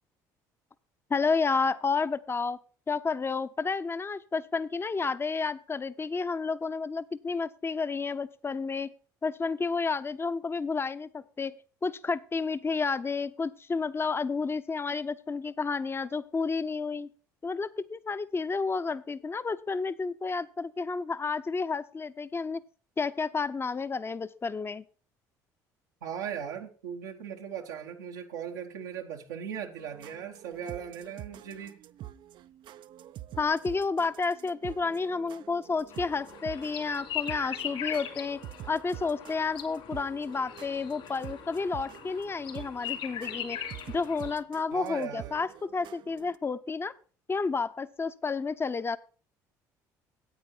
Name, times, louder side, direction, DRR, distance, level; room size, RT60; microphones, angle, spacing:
voice 1, 1.1-2.6 2.9-8.9 9.2-11.5 11.8-17.1 17.4-22.6 23.0-24.8 33.4-38.4 38.7-43.6 43.9-46.9 47.3-49.0, left 4 dB, 25° left, 0.7 m, -31 dB
voice 2, 26.0-31.8 44.7-45.4, right 8 dB, 85° right, 1.1 m, -38 dB
sound 1, 29.8-46.4, right 13 dB, 55° right, 0.5 m, -47 dB
sound 2, 35.9-44.3, left 10 dB, 65° left, 3.2 m, -40 dB
9.5 x 8.7 x 4.4 m
hypercardioid pair, 65°, 9 cm